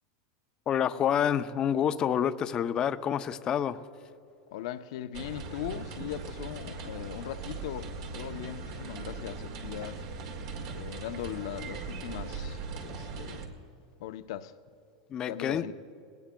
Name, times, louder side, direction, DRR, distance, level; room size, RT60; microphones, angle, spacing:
voice 1, 0.7-3.8 15.1-15.7, left 9 dB, 25° left, 0.5 m, -28 dB
voice 2, 4.5-10.0 10.7-13.5 14.0-14.5 15.3-15.7, left 12 dB, 70° left, 0.6 m, -39 dB
sound 1, 5.1-13.5, right 4 dB, 65° right, 1.9 m, -39 dB
21.0 x 18.5 x 2.2 m
supercardioid pair, 140°, 3 cm